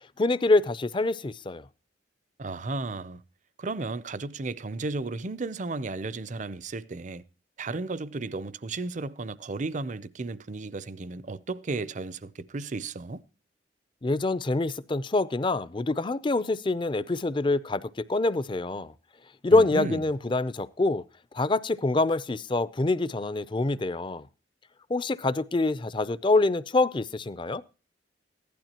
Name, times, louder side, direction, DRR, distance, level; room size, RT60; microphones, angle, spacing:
voice 1, 0.2-1.7 14.0-18.9 19.4-21.0 21.3-24.3 24.9-27.6, left 2 dB, 25° left, 0.5 m, -25 dB
voice 2, 2.4-3.2 3.6-7.2 7.6-13.2 19.5-20.0, right 3 dB, 40° right, 0.6 m, -34 dB
16.0 x 12.0 x 2.9 m
head